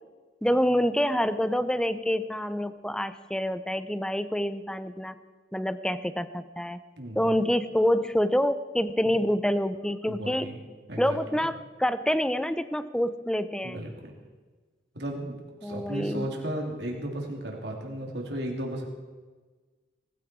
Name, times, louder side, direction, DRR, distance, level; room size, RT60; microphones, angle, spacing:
voice 1, 0.4-5.1 5.5-6.8 7.2-10.5 11.0-13.8 15.6-16.3, equal, 5° left, 12 dB, 0.6 m, -27 dB
voice 2, 7.0-7.4 9.0-9.2 10.1-10.6 10.9-11.4 13.6-14.1 14.9-18.8, right 1 dB, 60° right, 0 dB, 3.2 m, -35 dB
19.5 x 15.0 x 4.6 m, 1.3 s
head